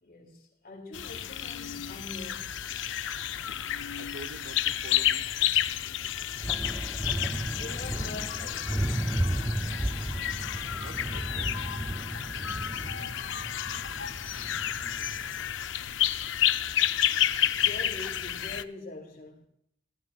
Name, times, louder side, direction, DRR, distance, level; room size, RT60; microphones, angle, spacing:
voice 1, 0.0-2.5 7.3-9.0 17.5-19.5, left 2 dB, 55° left, 2.6 m, -44 dB
sound 1, 0.9-18.6, left 11 dB, 75° left, 0.5 m, -31 dB
voice 2, 4.0-5.3 10.8-11.5, right 2 dB, 85° right, 0.9 m, -46 dB
sound 2, 4.2-4.3 4.5-4.8 5.1-5.5 6.1-15.5, right 1 dB, 10° right, 0.4 m, -34 dB
17.5 x 15.0 x 2.3 m
head